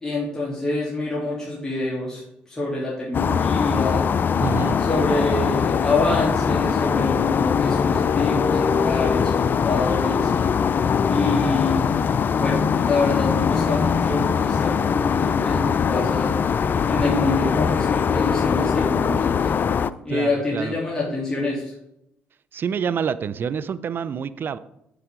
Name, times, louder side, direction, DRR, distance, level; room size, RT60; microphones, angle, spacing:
voice 1, 0.0-4.0 4.9-10.3 11.1-12.0 12.3-16.3 16.9-19.5 20.0-21.7, left 2 dB, 10° left, -7 dB, 3.1 m, -26 dB
sound 1, 3.1-19.9, left 6 dB, 45° left, 0.4 m, -21 dB
voice 2, 4.4-4.8 20.1-20.7 22.5-24.6, right 7 dB, 50° right, 15 dB, 0.5 m, -27 dB
8.1 x 7.0 x 3.7 m, 0.81 s
hypercardioid pair, 60°, 5 cm